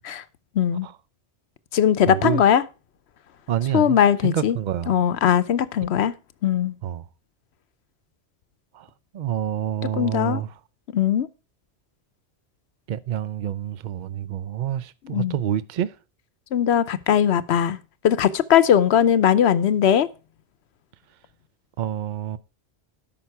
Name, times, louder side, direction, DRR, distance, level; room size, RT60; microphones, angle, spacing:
voice 1, 0.6-0.9 1.7-2.6 3.7-4.6 4.9-6.1 6.4-6.7 10.0-10.4 10.9-11.3 15.1-15.3 16.5-17.8 18.0-20.1, left 9 dB, 70° left, 0.9 m, -19 dB
voice 2, 2.1-2.4 3.5-5.0 6.8-7.1 8.7-8.9 9.1-10.5 12.9-15.9 21.8-22.4, right 11 dB, 55° right, 0.6 m, -27 dB
12.5 x 5.9 x 4.6 m
omnidirectional pair, 1.2 m